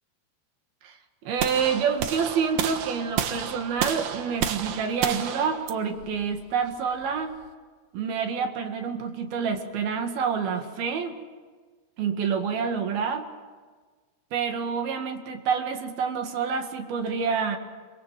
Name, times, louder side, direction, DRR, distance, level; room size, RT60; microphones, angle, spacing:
voice 1, 0.8-7.4 7.9-11.2 12.0-13.3 14.3-17.6, right 6 dB, 55° right, 5 dB, 3.3 m, -28 dB
sound 1, 1.4-7.5, right 9 dB, 75° right, 2.0 m, -31 dB
28.0 x 25.0 x 7.6 m, 1.4 s
omnidirectional pair, 6.0 m